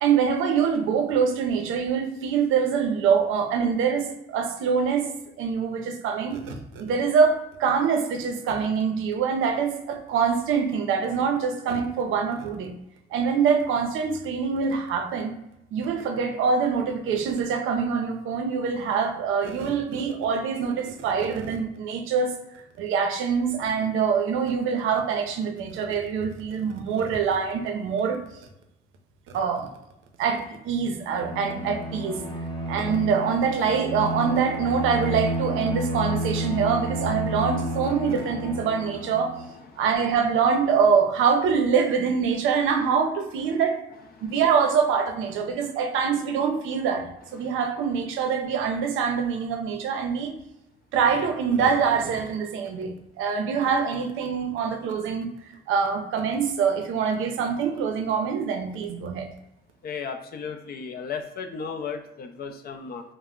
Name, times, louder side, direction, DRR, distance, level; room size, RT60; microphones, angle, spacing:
voice 1, 0.0-5.1 5.4-12.8 13.1-15.3 15.7-22.4 22.8-28.2 29.3-29.7 30.2-32.2 32.7-39.3 39.8-43.8 44.3-47.0 47.3-50.4 50.9-55.3 55.7-59.3, right 6 dB, 85° right, 4 dB, 0.5 m, -24 dB
Bowed string instrument, 31.0-39.5, equal, 25° left, 0.8 m, -31 dB
voice 2, 59.8-63.0, left 6 dB, 50° left, 6 dB, 0.4 m, -34 dB
2.2 x 2.0 x 3.6 m, 0.87 s
cardioid pair, 90°, 20 cm